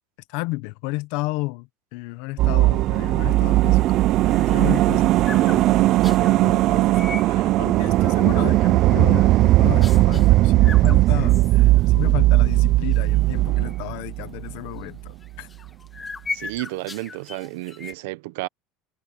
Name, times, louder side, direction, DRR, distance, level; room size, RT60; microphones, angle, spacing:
voice 1, 0.3-15.5, left 22 dB, 70° left, 1.1 m, -33 dB
sound 1, 2.4-14.8 15.1-15.2, right 17 dB, 45° right, 0.4 m, -18 dB
sound 2, 4.0-6.4 6.9-7.3 7.8-8.4 8.7-9.4 9.8-10.3 10.6-12.1 12.4-12.5 12.9-13.2 13.7-13.8 15.2-17.9, left 4 dB, 15° left, 1.5 m, -38 dB
voice 2, 16.3-18.5, right 20 dB, 80° right, 0.9 m, -32 dB
cardioid pair, 150°, 0 cm